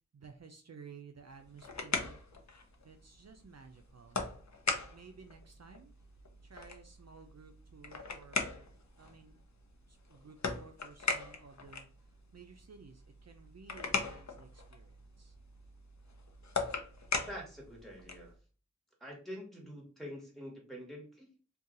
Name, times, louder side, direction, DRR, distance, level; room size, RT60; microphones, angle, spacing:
voice 1, 0.1-2.2 2.8-4.2 4.8-5.9 6.4-8.7 9.0-9.4 9.9-11.9 12.3-15.4, right 5 dB, 60° right, 5 dB, 0.4 m, -55 dB
sound 1, 1.3-18.3, left 4 dB, 70° left, 0.6 m, -40 dB
voice 2, 17.1-18.3 19.0-21.3, equal, ahead, -3 dB, 1.5 m, -46 dB
2.7 x 2.2 x 3.7 m, 0.38 s
wide cardioid pair, 45°, 30 cm